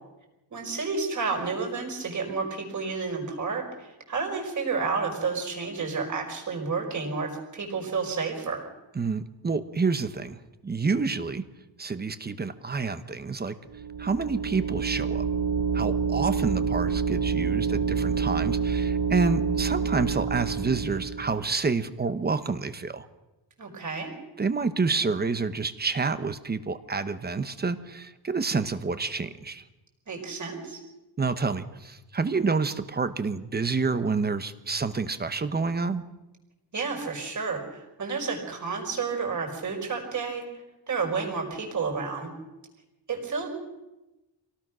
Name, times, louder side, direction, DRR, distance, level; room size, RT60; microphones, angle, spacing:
voice 1, 0.5-8.6 23.6-24.1 30.1-30.8 36.7-40.4 40.9-42.3 43.1-43.5, right 4 dB, 40° right, 2 dB, 5.3 m, -31 dB
voice 2, 8.9-11.4 11.8-13.6 14.0-15.3 15.7-23.1 24.4-29.6 31.2-36.0, right 4 dB, 20° right, 11 dB, 1.0 m, -28 dB
sound 1, 13.7-21.4, right 6 dB, 90° right, 4.9 m, -27 dB
27.0 x 18.0 x 6.2 m, 1.0 s
wide cardioid pair, 180°, 45 cm